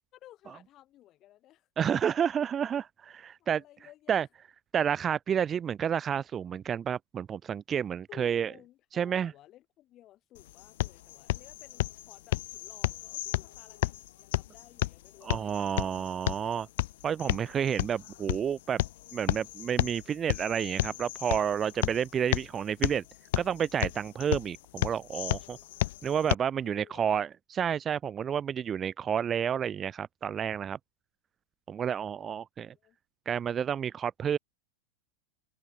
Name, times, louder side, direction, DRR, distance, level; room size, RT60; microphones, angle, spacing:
voice 1, 0.1-1.7 3.4-4.3 8.1-15.9 26.6-27.2 32.2-32.4 32.7-33.0, left 14 dB, 35° left, 5.8 m, -56 dB
voice 2, 1.8-3.6 4.1-4.3 4.7-8.5 8.9-9.3 15.3-16.7 17.0-18.8 19.1-23.0 23.4-25.6 26.0-27.3 27.6-30.8 31.7-32.7 33.3-34.4, right 8 dB, 25° right, 0.5 m, -30 dB
sound 1, 10.3-26.3, left 17 dB, 55° left, 1.5 m, -33 dB
open air
figure-of-eight pair, 90°, 0 cm